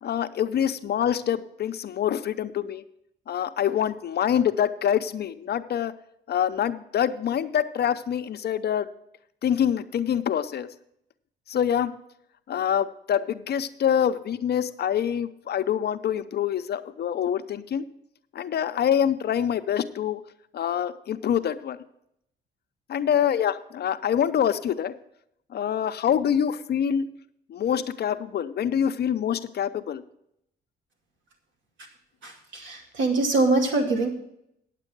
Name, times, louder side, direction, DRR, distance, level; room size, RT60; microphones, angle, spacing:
voice 1, 0.0-2.8 3.3-5.9 6.3-8.9 9.4-10.7 11.5-11.9 12.5-17.8 18.3-20.2 20.5-21.8 22.9-24.9 25.5-27.1 27.5-30.0, left 9 dB, 55° left, 10 dB, 0.6 m, -25 dB
voice 2, 32.2-34.1, right 3 dB, 70° right, 2 dB, 2.4 m, -24 dB
9.8 x 7.5 x 6.0 m, 0.76 s
cardioid pair, 90°, 20 cm